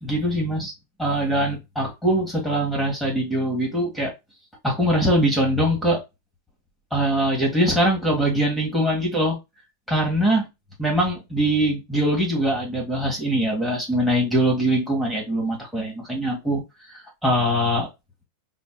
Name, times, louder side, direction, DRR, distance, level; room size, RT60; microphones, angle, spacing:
voice 1, 0.0-0.7 1.0-4.1 4.6-6.0 6.9-9.4 9.9-10.5 10.8-16.6 16.9-17.9, right 1 dB, ahead, 1.6 m, -22 dB
5.0 x 2.2 x 3.6 m
figure-of-eight pair, 90°, 0 cm